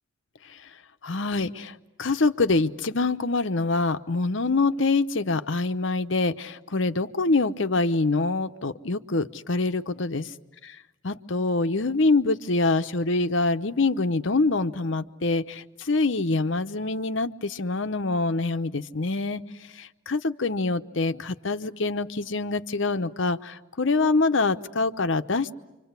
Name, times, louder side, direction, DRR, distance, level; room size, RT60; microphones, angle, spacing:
voice 1, 1.0-10.3 10.6-10.8 11.0-19.4 19.8-25.5, left 3 dB, 65° left, 10 dB, 0.9 m, -25 dB
28.5 x 25.5 x 8.2 m, 1.0 s
head